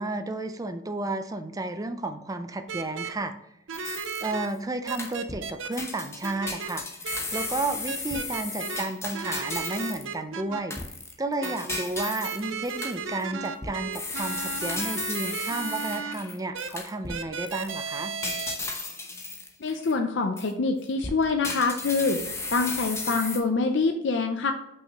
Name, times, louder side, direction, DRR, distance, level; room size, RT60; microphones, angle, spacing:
voice 1, 0.0-3.3 4.2-7.0 7.3-10.8 11.2-18.1, right 2 dB, 20° right, 9 dB, 0.4 m, -32 dB
sound 1, 2.7-3.1 3.7-4.5 4.9-5.7 6.2-6.7 7.0-7.5 7.9-8.8 9.1-10.6 11.4-16.1 16.5-16.7 17.1-18.6, right 5 dB, 80° right, 0.6 m, -34 dB
sound 2, 3.7-4.5 4.9-5.5 5.7-10.1 10.7-17.2 17.5-17.7 18.2-19.9 20.4-20.5 21.0-23.4, left 3 dB, 15° left, 0.8 m, -35 dB
voice 2, 19.6-22.2 22.5-24.5, left 4 dB, 65° left, 4 dB, 0.5 m, -25 dB
5.7 x 5.5 x 3.0 m, 0.83 s
head